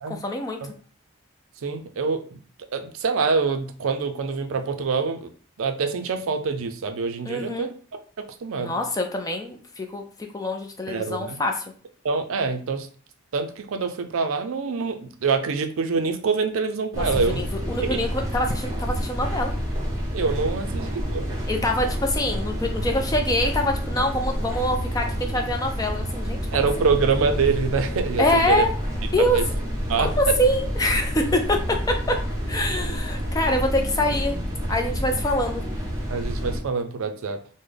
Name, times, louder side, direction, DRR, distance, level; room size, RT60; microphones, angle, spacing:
voice 1, 0.1-0.7 7.3-7.7 8.6-10.0 10.3-11.6 17.0-19.5 21.5-26.7 28.2-28.7 29.1-29.4 30.0-32.2 32.5-34.4 34.7-35.6, left 1 dB, 15° left, 3 dB, 0.3 m, -25 dB
voice 2, 1.6-2.4 2.7-5.3 5.6-7.7 8.2-8.7 10.9-11.4 12.0-12.9 13.3-17.4 17.8-18.0 20.1-21.2 26.5-28.6 29.1-29.5 29.9-30.1 36.1-37.4, right 4 dB, 70° right, 6 dB, 0.4 m, -25 dB
sound 1, 16.9-36.6, equal, 15° right, 0.8 m, -28 dB
3.6 x 2.1 x 3.3 m, 0.42 s
head